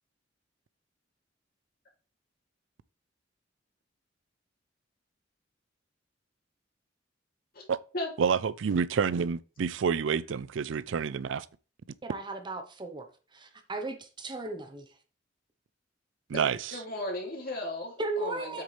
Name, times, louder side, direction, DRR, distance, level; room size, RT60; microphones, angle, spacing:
voice 1, 8.2-11.5 16.3-16.8, right 6 dB, 75° right, 0.4 m, -28 dB
voice 2, 12.0-15.0 18.0-18.6, right 2 dB, 25° right, 0.9 m, -36 dB
voice 3, 16.7-18.6, left 1 dB, 50° left, 2.7 m, -36 dB
8.1 x 6.4 x 3.2 m
head